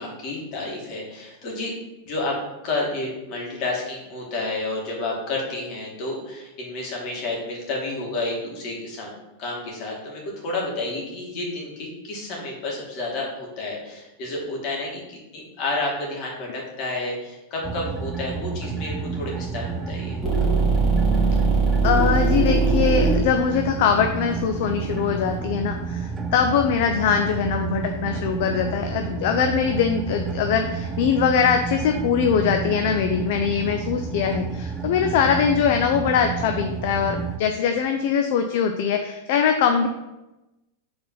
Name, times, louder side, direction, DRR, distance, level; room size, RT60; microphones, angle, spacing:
voice 1, 0.0-1.7 2.0-9.1 9.4-20.2, left 2 dB, 45° left, -2 dB, 2.4 m, -30 dB
sound 1, 17.6-37.4, right 5 dB, 15° right, 0.5 m, -30 dB
sound 2, 20.2-25.4, right 4 dB, 10° left, 2.2 m, -21 dB
voice 2, 21.8-39.9, left 7 dB, 60° left, 5 dB, 0.6 m, -22 dB
5.1 x 4.3 x 5.7 m, 0.97 s
supercardioid pair, 140°, 0 cm